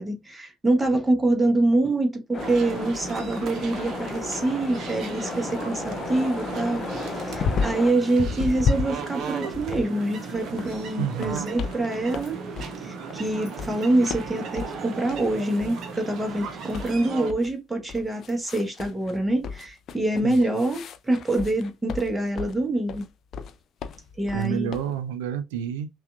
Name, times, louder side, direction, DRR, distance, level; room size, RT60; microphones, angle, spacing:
voice 1, 0.0-12.4 12.8-23.1 24.2-24.8, right 2 dB, 15° right, 1.2 m, -25 dB
sound 1, 2.3-7.9, left 4 dB, 30° left, 0.8 m, -35 dB
sound 2, 2.4-17.3, right 5 dB, 50° right, 0.9 m, -36 dB
sound 3, 7.2-7.9 8.2-10.8 11.2-11.8 12.1-12.8 13.1-14.8 15.1-15.3 15.6-15.9 16.2-17.5 17.9-19.2 19.4-22.6 22.9-23.5 23.8-24.9, left 5 dB, 45° left, 0.4 m, -32 dB
voice 2, 11.0-11.5 20.2-20.4 24.3-25.9, right 9 dB, 70° right, 0.5 m, -29 dB
5.7 x 2.5 x 2.4 m
figure-of-eight pair, 55°, 0 cm